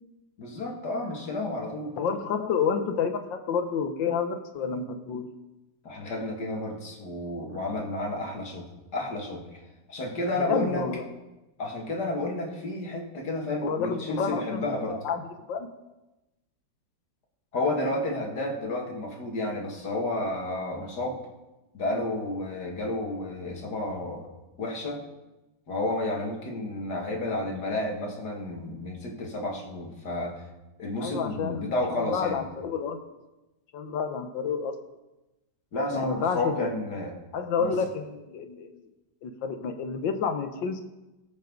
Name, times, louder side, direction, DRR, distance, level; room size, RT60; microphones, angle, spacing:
voice 1, 0.4-1.9 5.8-9.5 9.9-10.8 11.6-15.0 17.5-21.2 21.7-24.3 24.6-25.0 25.7-30.4 30.8-32.4 35.7-37.1 37.6-37.7, left 2 dB, 60° left, 0 dB, 2.6 m, -31 dB
voice 2, 2.0-5.3 10.4-11.0 13.6-14.6 14.9-15.2 15.5-15.7 31.0-33.0 33.7-34.7 35.9-36.7 37.3-38.8 39.2-40.8, left 6 dB, 80° left, 7 dB, 1.8 m, -29 dB
23.0 x 8.2 x 3.9 m, 1.0 s
omnidirectional pair, 2.0 m